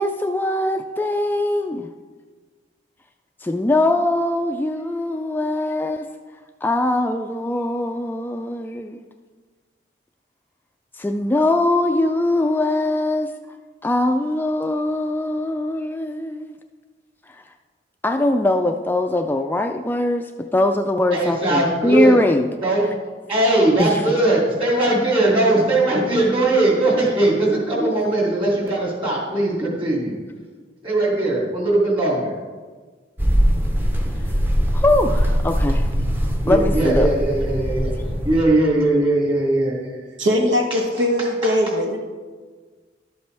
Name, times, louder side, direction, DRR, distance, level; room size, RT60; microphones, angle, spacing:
voice 1, 0.0-1.9 3.4-6.1 6.6-9.0 10.9-13.3 13.8-16.6 17.3-17.4 18.0-22.5 23.8-24.2 34.7-35.9 36.5-37.1, left 1 dB, 10° left, 5 dB, 0.3 m, -21 dB
voice 2, 21.1-22.2 22.6-22.9 23.3-30.2 30.8-32.4 36.4-37.9 38.2-40.3 40.9-41.0 41.4-41.5, right 2 dB, 30° right, -3 dB, 2.6 m, -20 dB
sound 1, 33.2-38.4, equal, 10° right, 0.7 m, -21 dB
voice 3, 40.2-42.0, equal, 85° right, 2 dB, 1.3 m, -20 dB
12.0 x 8.0 x 3.4 m, 1.4 s
head